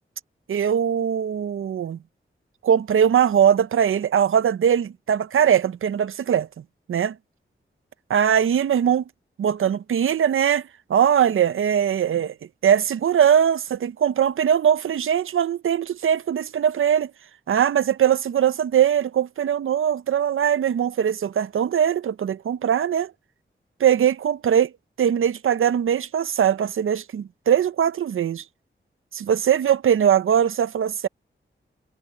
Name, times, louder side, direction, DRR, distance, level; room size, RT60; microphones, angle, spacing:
voice 1, 0.5-2.0 2.6-6.5 6.9-7.1 8.1-9.0 9.4-10.6 10.9-12.3 12.6-17.1 17.5-23.1 23.8-24.7 25.0-28.4 29.1-31.1, right 9 dB, 85° right, 0.6 m, -21 dB
cardioid pair, 60°, 21 cm